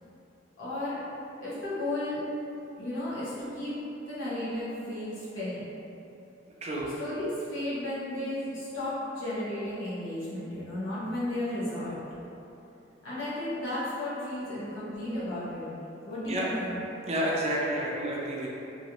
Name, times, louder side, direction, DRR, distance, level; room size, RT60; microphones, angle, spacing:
voice 1, 0.6-1.0 1.4-2.2 2.8-3.8 4.1-5.7 7.0-12.0 13.0-15.7 16.0-16.8, left 1 dB, 80° left, -10 dB, 1.1 m, -34 dB
voice 2, 6.6-6.9 16.3-16.5 17.1-18.5, right 1 dB, 35° right, -4 dB, 0.4 m, -30 dB
3.0 x 2.5 x 2.9 m, 2.9 s
head